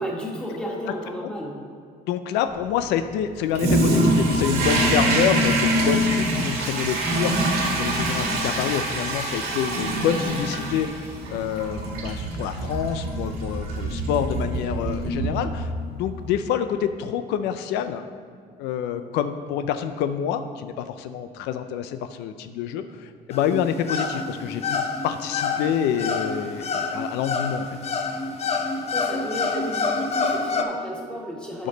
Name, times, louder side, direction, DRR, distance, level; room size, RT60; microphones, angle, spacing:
voice 1, 0.0-1.6 28.9-31.7, equal, 5° left, -2 dB, 1.7 m, -33 dB
voice 2, 2.1-18.0 18.6-27.7 31.6-31.7, left 9 dB, 90° left, 9 dB, 0.5 m, -27 dB
Toilet flush, 3.5-15.9, right 1 dB, 70° right, 1.9 m, -24 dB
sound 1, 23.3-30.6, left 4 dB, 40° left, 0.7 m, -27 dB
11.0 x 5.2 x 3.9 m, 2.3 s
cardioid pair, 110°, 17 cm